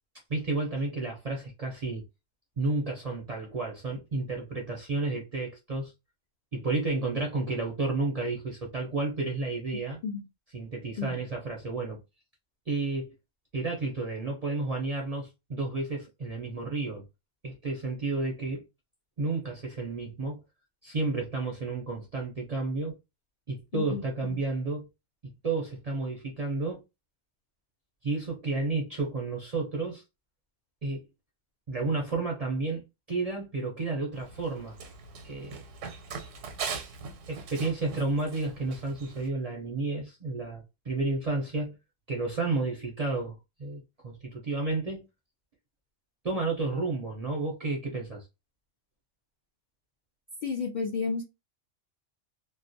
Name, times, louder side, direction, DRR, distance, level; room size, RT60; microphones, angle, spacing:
voice 1, 0.3-2.0 2.6-5.9 6.5-10.0 10.5-12.0 12.7-13.1 13.5-17.0 17.4-18.6 19.2-20.4 20.8-23.0 23.5-24.9 25.4-26.8 28.0-30.0 30.8-31.0 31.7-32.8 33.1-34.8 35.2-35.6 37.3-41.8 42.1-45.1 46.2-48.3, right 3 dB, 50° right, 0.5 m, -31 dB
voice 2, 23.7-24.4 50.4-51.2, left 5 dB, 70° left, 0.4 m, -32 dB
Run, 34.1-39.3, right 5 dB, 80° right, 1.0 m, -41 dB
2.3 x 2.1 x 2.5 m
omnidirectional pair, 1.3 m